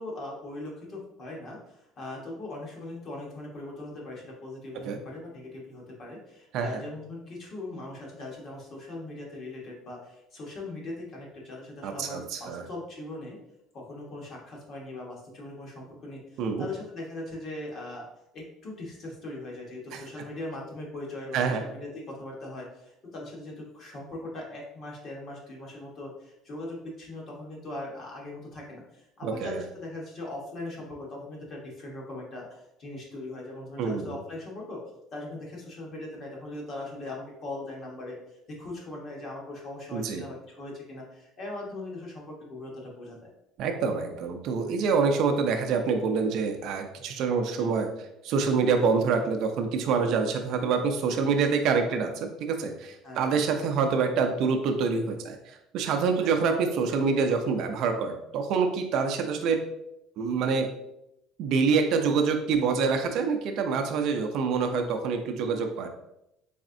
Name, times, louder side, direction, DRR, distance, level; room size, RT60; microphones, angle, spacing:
voice 1, 0.0-13.4 13.7-18.0 18.3-34.8 35.1-43.3 47.6-47.7 53.0-53.4 56.2-56.3, left 2 dB, 35° left, -2 dB, 1.1 m, -40 dB
voice 2, 11.8-12.6 16.4-16.7 19.9-20.0 21.3-21.6 29.2-29.6 33.8-34.2 39.9-40.2 43.6-47.9 48.2-59.6 60.2-60.7 61.4-65.9, right 5 dB, 55° right, 5 dB, 0.4 m, -26 dB
4.1 x 3.5 x 2.6 m, 0.84 s
cardioid pair, 160°, 0 cm